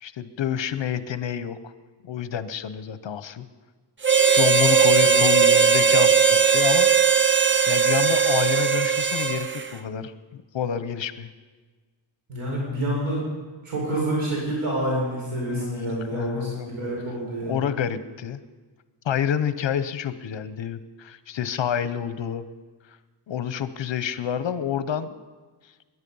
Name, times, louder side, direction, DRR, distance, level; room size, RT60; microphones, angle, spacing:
voice 1, 0.0-1.7 2.0-3.4 4.3-7.4 7.7-11.3 15.5-16.7 17.5-18.4 19.0-22.5 23.3-25.1, left 9 dB, 65° left, 13 dB, 0.9 m, -28 dB
Harmonica, 4.0-9.7, right 6 dB, 25° right, 0.6 m, -18 dB
voice 2, 12.3-13.2 13.6-17.7, right 1 dB, 75° right, -3 dB, 5.1 m, -28 dB
20.5 x 11.0 x 5.5 m, 1.4 s
wide cardioid pair, 130°, 49 cm